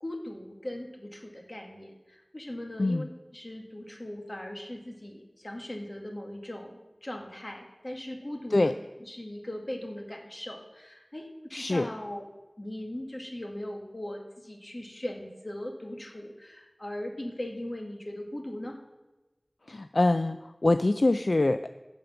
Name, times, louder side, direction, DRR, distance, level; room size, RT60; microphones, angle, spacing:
voice 1, 0.0-3.1 3.3-8.7 9.0-12.2 12.6-18.8, left 1 dB, 50° left, 2 dB, 1.7 m, -39 dB
voice 2, 11.5-11.9 19.7-21.7, left 2 dB, 75° left, 9 dB, 0.3 m, -24 dB
15.0 x 5.2 x 5.8 m, 1.1 s
wide cardioid pair, 45°, 0 cm